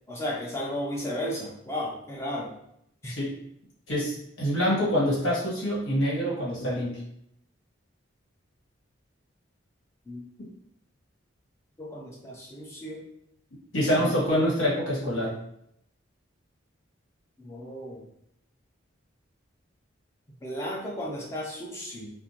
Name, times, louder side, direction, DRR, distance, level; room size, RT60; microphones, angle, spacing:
voice 1, 0.1-2.5 3.0-3.1 10.1-10.2 11.8-13.0 13.9-14.1 17.4-18.0 20.4-22.1, left 1 dB, 15° left, -3 dB, 0.4 m, -34 dB
voice 2, 3.9-6.9 13.7-15.3, equal, 80° left, -7 dB, 1.3 m, -25 dB
2.4 x 2.1 x 2.8 m, 0.74 s
head